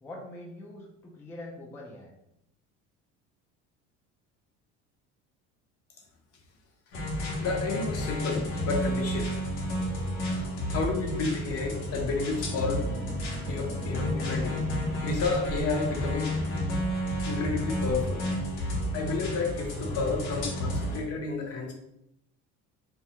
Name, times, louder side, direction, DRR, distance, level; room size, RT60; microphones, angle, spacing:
voice 1, 0.0-2.1, left 1 dB, 5° left, -2 dB, 0.4 m, -43 dB
sound 1, 6.9-21.0, equal, 85° left, 0.8 m, -31 dB
voice 2, 7.4-9.4 10.3-12.8 13.5-14.6 15.0-16.3 17.3-18.2 18.9-21.7, left 4 dB, 50° left, 2 dB, 0.6 m, -31 dB
sound 2, 12.7-16.4 17.3-20.8, right 1 dB, 30° right, 0.7 m, -40 dB
2.3 x 2.2 x 2.8 m, 0.78 s
supercardioid pair, 110°, 31 cm